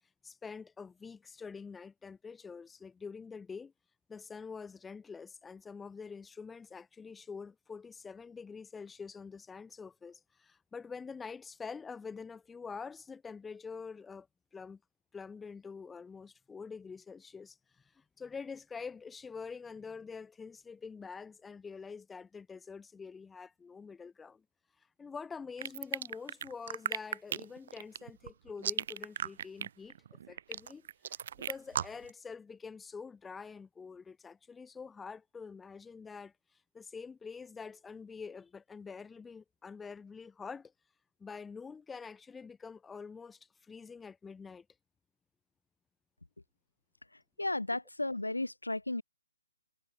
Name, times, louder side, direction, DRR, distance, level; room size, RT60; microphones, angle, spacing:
voice 1, 0.2-3.7 4.1-14.3 14.5-14.8 15.1-24.4 25.0-36.3 36.7-40.7 41.2-44.6, left 5 dB, 5° left, 3.3 m, -46 dB
sound 1, 25.6-32.1, right 9 dB, 40° right, 3.3 m, -36 dB
voice 2, 47.4-49.0, left 2 dB, 80° left, 2.7 m, -34 dB
figure-of-eight pair, 135°, 0 cm